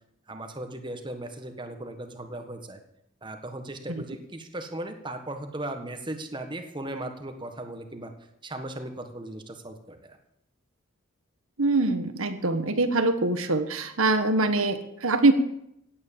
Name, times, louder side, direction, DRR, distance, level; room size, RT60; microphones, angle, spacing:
voice 1, 0.3-2.8 3.2-8.1 8.4-10.2, right 1 dB, 25° right, 6 dB, 1.6 m, -37 dB
voice 2, 11.6-15.3, right 2 dB, 85° right, 9 dB, 1.5 m, -23 dB
16.5 x 9.4 x 7.5 m, 0.77 s
head